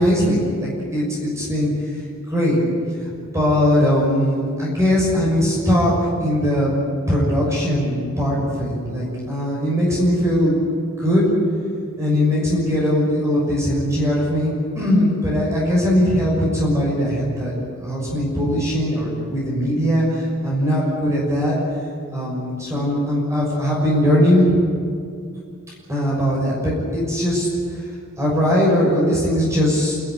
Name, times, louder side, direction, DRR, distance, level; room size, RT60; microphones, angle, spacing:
voice 1, 0.0-1.7 2.3-2.6 3.0-3.1 3.3-6.7 7.1-10.5 11.0-11.2 12.0-17.5 17.8-21.6 22.1-24.5 25.9-27.5 28.2-30.0, equal, 15° right, -5 dB, 6.3 m, -20 dB
28.5 x 13.0 x 9.8 m, 2.3 s
head